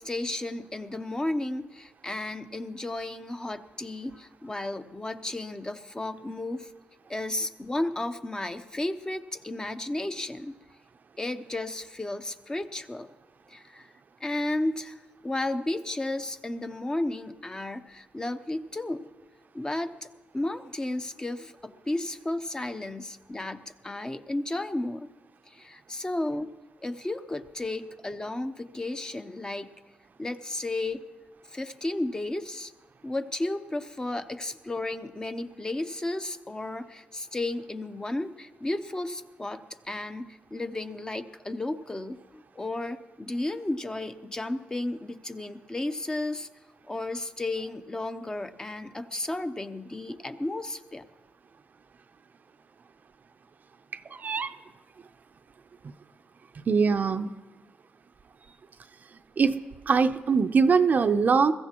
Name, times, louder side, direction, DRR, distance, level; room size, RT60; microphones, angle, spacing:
voice 1, 0.0-6.7 7.1-10.6 11.2-13.1 13.5-13.9 14.2-19.1 19.5-20.1 20.3-25.1 25.5-26.5 26.8-29.7 30.2-31.0 31.5-32.7 33.0-46.5 46.9-51.0, left 2 dB, 20° left, 8 dB, 0.7 m, -33 dB
voice 2, 54.1-54.5 56.6-57.3 59.4-61.5, right 5 dB, 50° right, 9 dB, 0.6 m, -23 dB
21.5 x 15.0 x 2.9 m, 1.2 s
cardioid pair, 85°, 4 cm